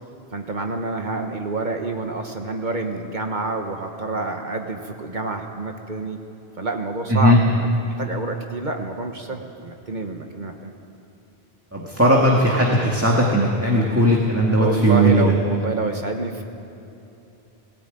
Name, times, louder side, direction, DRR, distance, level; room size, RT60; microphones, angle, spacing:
voice 1, 0.3-6.2 6.6-10.7 14.6-16.4, right 3 dB, 50° right, 4 dB, 1.3 m, -28 dB
voice 2, 11.7-15.3, right 1 dB, 15° right, -3 dB, 1.9 m, -17 dB
17.5 x 17.5 x 9.2 m, 3.0 s
omnidirectional pair, 1.0 m